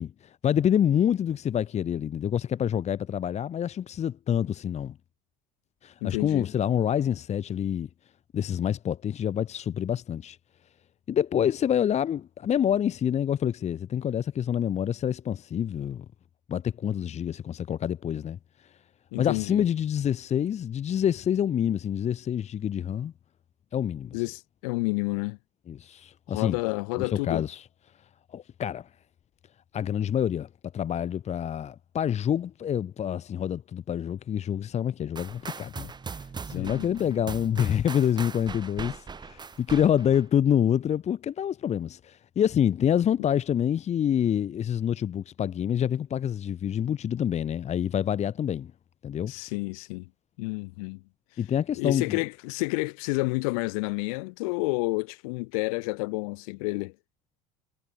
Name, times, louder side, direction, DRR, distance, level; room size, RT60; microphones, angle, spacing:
voice 1, 0.0-5.0 5.8-7.9 8.3-10.4 11.1-16.0 16.5-18.8 19.2-23.1 23.7-24.2 25.7-26.6 27.0-27.7 28.3-28.9 29.7-48.7 49.0-49.3 51.4-52.2, left 9 dB, 35° left, 1.2 m, -27 dB
voice 2, 6.0-6.5 19.1-19.6 24.1-25.4 26.3-27.4 36.5-37.2 49.2-50.1 50.4-51.0 51.7-56.9, left 28 dB, 75° left, 1.8 m, -30 dB
sound 1, 35.2-40.3, right 5 dB, 25° right, 1.9 m, -40 dB
hypercardioid pair, 80°, 18 cm